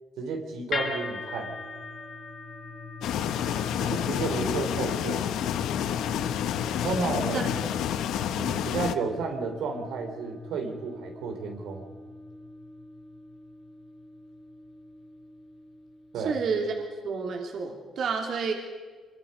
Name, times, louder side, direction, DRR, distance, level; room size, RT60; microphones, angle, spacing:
voice 1, 0.2-1.6 3.8-5.2 6.8-7.5 8.3-11.9 16.1-16.3, right 4 dB, 85° right, 3 dB, 3.2 m, -32 dB
sound 1, 0.7-16.9, left 4 dB, 55° left, 4.2 m, -40 dB
sound 2, 3.0-8.9, left 10 dB, 85° left, 0.9 m, -29 dB
voice 2, 16.2-16.7 17.0-18.5, right 5 dB, 65° right, 2 dB, 3.0 m, -29 dB
24.5 x 23.0 x 5.5 m, 1.5 s
cardioid pair, 90°, 0 cm